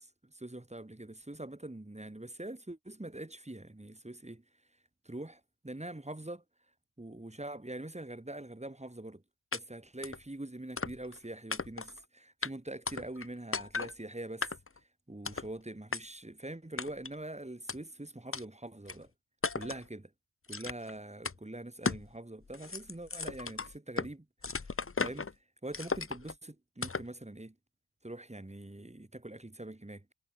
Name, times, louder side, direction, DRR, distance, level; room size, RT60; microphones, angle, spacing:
voice 1, 0.0-4.4 5.0-6.4 7.0-9.2 9.5-14.5 15.1-19.1 19.5-20.1 20.5-24.3 24.6-25.3 25.6-27.5 28.0-30.0, right 1 dB, 15° right, 4.5 m, -44 dB
sound 1, 9.5-9.6 10.0-10.2 10.8-11.2 11.5-12.0 12.4-12.5 12.9-13.3 13.5-13.9 14.4-14.8 15.2-15.5 15.9-16.0 16.8-17.1 17.7-17.8 18.3-18.4 18.9-19.0 19.4-19.8 20.5-20.9 21.2-21.4 21.8-22.1 22.4-24.1 24.4-25.3 25.7-26.3 26.8-27.1, left 4 dB, 30° left, 1.2 m, -36 dB
wide cardioid pair, 100°, 44 cm